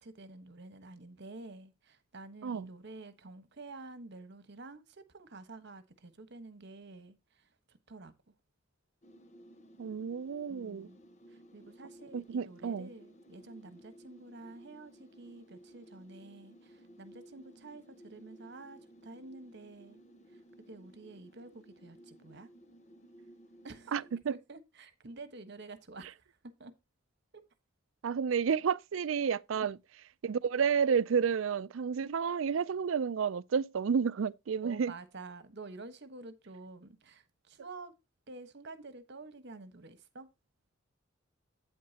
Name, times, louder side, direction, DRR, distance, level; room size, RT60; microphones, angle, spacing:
voice 1, 0.0-8.1 10.5-11.0 11.3-20.0 20.3-20.4 20.7-22.5 23.6-23.9 24.3-26.3 26.6-26.7 27.3-27.4 29.5-29.7 34.6-37.9 38.3-40.3, right 3 dB, 60° right, 1.3 m, -49 dB
sound 1, 9.0-24.2, equal, 35° left, 1.2 m, -57 dB
voice 2, 9.8-10.9 12.1-12.9 23.9-24.3 28.0-29.8 30.2-34.9, right 6 dB, 75° right, 0.4 m, -31 dB
8.8 x 8.5 x 2.8 m
head